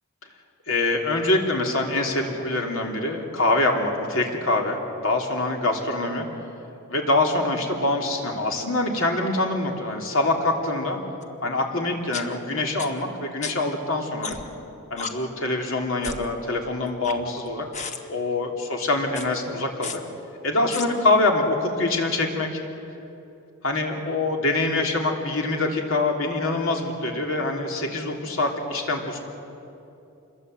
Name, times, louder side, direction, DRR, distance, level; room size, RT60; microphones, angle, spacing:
voice 1, 0.7-6.2 6.9-11.0 11.4-14.4 14.9-17.6 18.1-20.0 20.4-22.6 23.6-29.2, left 2 dB, 65° left, 1 dB, 3.2 m, -24 dB
sound 1, 11.2-11.3 12.1-12.2 12.8-12.9 13.4-13.5 14.2-14.6 15.0-15.1 16.0-16.3 16.8-17.5 17.7-18.0 19.1-19.3 19.8-20.0 20.7-20.9, left 5 dB, 30° left, 1.3 m, -33 dB
27.5 x 21.5 x 8.1 m, 2.9 s
head